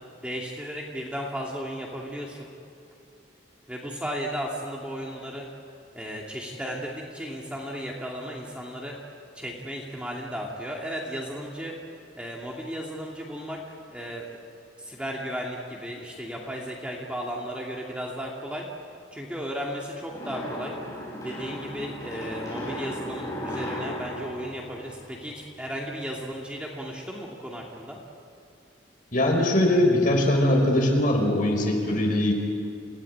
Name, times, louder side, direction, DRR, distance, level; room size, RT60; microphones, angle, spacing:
voice 1, 0.2-2.5 3.7-5.4 5.9-8.9 9.3-11.8 12.1-13.6 13.9-14.4 14.8-18.7 19.1-20.7 21.2-28.0, equal, 5° right, -2 dB, 2.3 m, -35 dB
sound 1, 20.1-25.5, left 1 dB, 15° left, 7.8 m, -36 dB
voice 2, 29.1-32.3, left 1 dB, 45° left, 1 dB, 4.9 m, -21 dB
29.0 x 17.0 x 9.7 m, 2.6 s
head